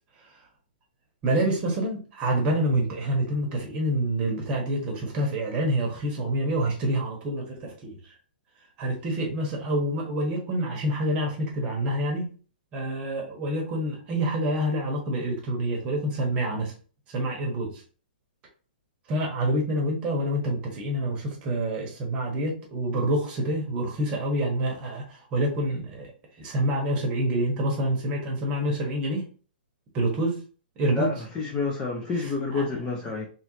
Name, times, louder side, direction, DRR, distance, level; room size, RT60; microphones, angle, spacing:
voice 1, 1.2-8.0 8.8-12.3 12.7-16.7 17.1-17.8 19.1-26.1 26.4-29.3 29.9-30.4 30.8-31.1 32.2-32.7, right 1 dB, 20° right, 0 dB, 1.2 m, -27 dB
voice 2, 30.9-33.3, left 4 dB, 15° left, 0 dB, 0.6 m, -29 dB
3.6 x 3.1 x 3.2 m, 0.39 s
hypercardioid pair, 160°, 5 cm